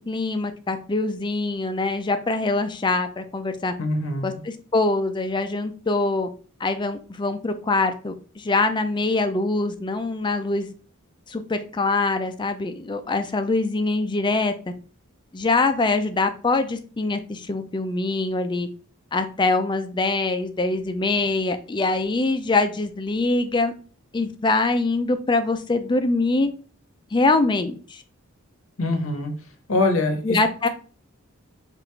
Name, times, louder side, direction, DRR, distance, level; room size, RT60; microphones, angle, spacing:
voice 1, 0.1-3.7 4.2-6.3 6.6-10.7 11.3-14.5 15.3-18.7 19.1-23.7 24.1-26.5 27.1-28.0 30.2-30.7, left 3 dB, 20° left, 9 dB, 0.4 m, -23 dB
voice 2, 3.8-4.4 28.8-29.3 29.7-30.4, left 2 dB, 70° left, 6 dB, 0.9 m, -23 dB
4.8 x 2.5 x 3.2 m, 0.39 s
head